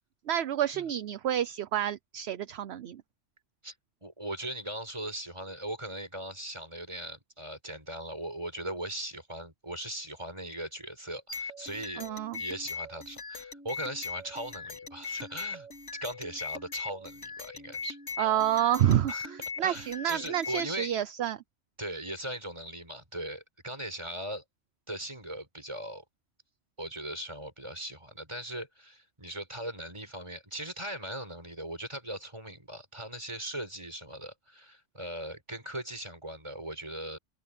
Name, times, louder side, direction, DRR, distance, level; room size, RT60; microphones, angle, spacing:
voice 1, 0.3-3.0 12.0-12.4 18.2-21.4, right 11 dB, 65° right, 0.9 m, -29 dB
voice 2, 4.0-12.1 12.4-15.7 15.9-18.0 19.1-19.3 19.6-20.9 21.8-24.4 24.9-26.0 26.8-37.2, right 1 dB, 25° right, 5.8 m, -39 dB
sound 1, 11.3-20.7, left 5 dB, 75° left, 2.5 m, -40 dB
omnidirectional pair, 1.2 m